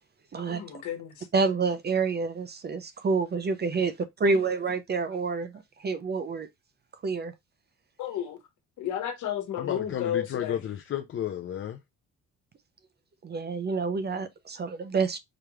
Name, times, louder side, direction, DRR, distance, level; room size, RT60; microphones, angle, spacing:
voice 1, 0.5-1.3 8.0-8.4 8.8-10.6, left 10 dB, 80° left, 1.2 m, -32 dB
voice 2, 1.3-3.9 4.2-5.5 5.8-6.5 7.0-7.3 13.2-15.2, right 4 dB, 35° right, 0.5 m, -28 dB
voice 3, 9.6-11.8, left 10 dB, 45° left, 0.5 m, -32 dB
4.8 x 3.0 x 2.3 m
cardioid pair, 90°, 30 cm